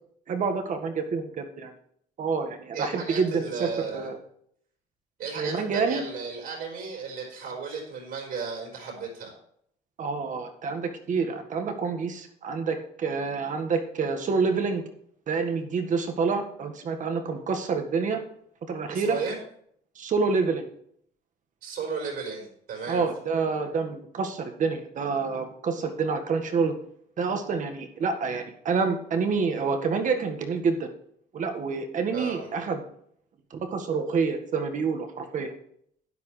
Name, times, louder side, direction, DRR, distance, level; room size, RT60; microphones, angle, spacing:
voice 1, 0.3-1.7 2.2-4.2 5.4-6.0 10.0-14.8 15.3-18.2 18.7-19.2 19.9-20.7 22.9-26.7 27.2-30.9 31.3-32.8 33.5-35.5, right 5 dB, 50° right, 5 dB, 1.7 m, -28 dB
voice 2, 2.7-4.1 5.2-9.3 18.9-19.4 21.6-23.1 32.1-32.5, right 5 dB, 65° right, -1 dB, 4.3 m, -34 dB
12.5 x 9.6 x 3.3 m, 0.66 s
cardioid pair, 110°, 17 cm